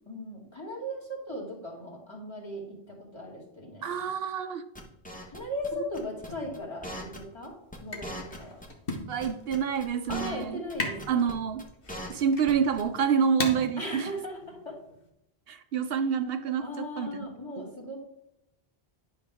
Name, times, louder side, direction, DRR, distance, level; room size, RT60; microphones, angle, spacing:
voice 1, 0.1-4.1 5.3-7.5 7.8-8.6 10.1-11.2 13.8-14.8 16.6-18.0, equal, 25° left, -1 dB, 2.4 m, -38 dB
voice 2, 3.8-4.6 9.1-10.6 11.1-11.6 12.1-14.1 15.5-17.2 17.6-17.7, right 7 dB, 70° right, 9 dB, 0.8 m, -27 dB
sound 1, 4.8-5.7 5.9-6.3 6.5-6.6 6.8-7.5 7.7-7.8 8.0-9.0 9.2-10.4 10.7-10.8 11.0-11.3 11.6-12.5 12.8-12.9, equal, 10° left, 1.2 m, -40 dB
sound 2, 6.3-15.1, left 2 dB, 60° left, 1.5 m, -40 dB
10.5 x 5.7 x 3.5 m, 0.81 s
omnidirectional pair, 1.0 m